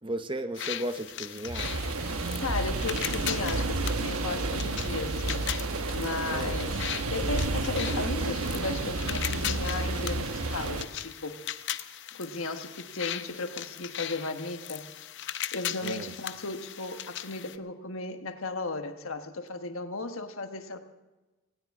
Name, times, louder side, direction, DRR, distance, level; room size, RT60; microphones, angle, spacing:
voice 1, 0.0-1.8 6.2-6.6 15.8-16.1, right 1 dB, 20° right, 9 dB, 0.7 m, -35 dB
sound 1, 0.6-17.6, left 11 dB, 55° left, 0.6 m, -38 dB
sound 2, 1.4-9.1, right 2 dB, 60° right, 1.1 m, -39 dB
sound 3, 1.6-10.8, right 2 dB, 85° right, 1.1 m, -31 dB
voice 2, 2.4-5.5 5.9-6.8 7.1-11.4 12.1-14.9 15.5-20.8, left 3 dB, 70° left, 7 dB, 1.3 m, -35 dB
18.5 x 18.0 x 3.6 m, 1.1 s
head